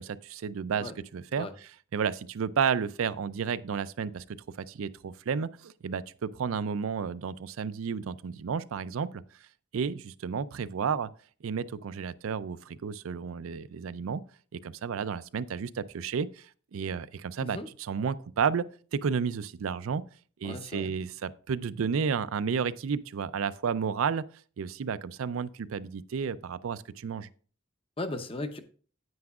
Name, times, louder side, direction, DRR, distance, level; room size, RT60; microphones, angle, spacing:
voice 1, 0.0-1.5 1.9-4.2 4.6-9.2 9.7-11.1 11.4-14.2 14.5-16.5 16.7-18.7 18.9-20.0 20.4-24.2 24.6-27.3, right 6 dB, 85° right, 0.4 m, -32 dB
voice 2, 20.4-20.9 28.0-28.6, left 2 dB, 25° left, 0.7 m, -36 dB
9.5 x 8.7 x 2.4 m
head